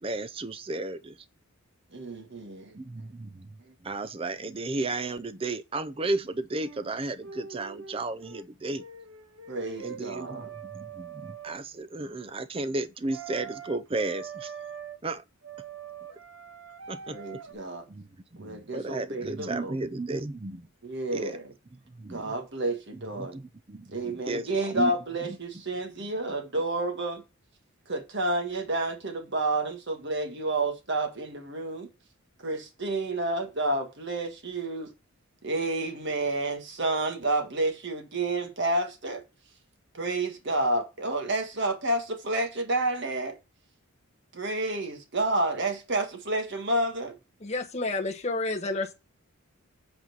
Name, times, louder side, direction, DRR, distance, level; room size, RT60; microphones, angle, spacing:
voice 1, 0.0-1.2 2.7-3.5 3.8-8.8 9.8-14.5 15.0-15.2 16.9-17.4 17.9-20.7 21.1-21.4 22.0-22.3 23.2-24.9, right 2 dB, 25° right, 0.5 m, -34 dB
voice 2, 1.9-2.8 3.7-3.8 9.5-10.5 17.1-17.9 18.4-19.7 20.8-21.5 22.1-23.4 23.9-27.2 27.9-31.9 32.4-34.9 35.4-39.2 39.9-43.4 44.3-47.2, right 2 dB, 50° right, 1.6 m, -30 dB
sound 1, 6.5-8.5 8.7-11.6 13.1-15.0 15.4-17.5, right 7 dB, 80° right, 1.3 m, -43 dB
voice 3, 47.4-48.9, left 2 dB, 30° left, 1.0 m, -30 dB
8.1 x 4.3 x 4.6 m
head